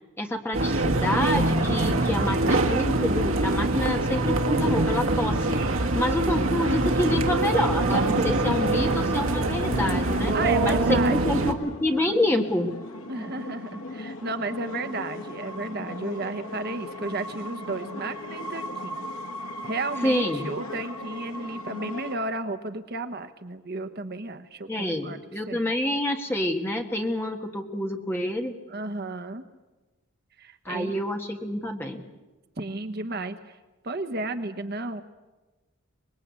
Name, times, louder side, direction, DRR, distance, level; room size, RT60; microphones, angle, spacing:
voice 1, 0.2-5.6 5.9-10.3 10.6-12.7 20.0-20.5 24.7-28.5 30.6-32.0, left 1 dB, 10° left, 3 dB, 1.6 m, -27 dB
sound 1, 0.5-11.5, right 2 dB, 70° right, 1.6 m, -24 dB
voice 2, 1.9-2.3 5.5-6.0 10.3-11.5 13.1-19.1 19.6-25.2 25.5-25.7 28.7-29.4 30.4-31.0 32.6-33.6 33.8-35.0, right 2 dB, 45° right, 9 dB, 1.0 m, -33 dB
sound 2, 7.9-22.2, left 2 dB, 80° left, 1.5 m, -37 dB
25.0 x 20.5 x 8.3 m, 1.2 s
head